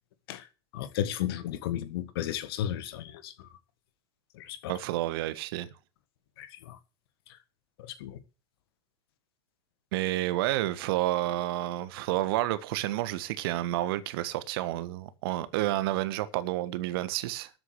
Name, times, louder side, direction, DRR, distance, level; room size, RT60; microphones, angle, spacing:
voice 1, 0.7-3.3 4.4-4.7 6.4-6.8 8.0-8.2, left 11 dB, 60° left, 1.6 m, -33 dB
voice 2, 4.7-5.7 9.9-17.5, right 15 dB, 60° right, 1.6 m, -30 dB
13.5 x 8.1 x 6.7 m
figure-of-eight pair, 80°, 14 cm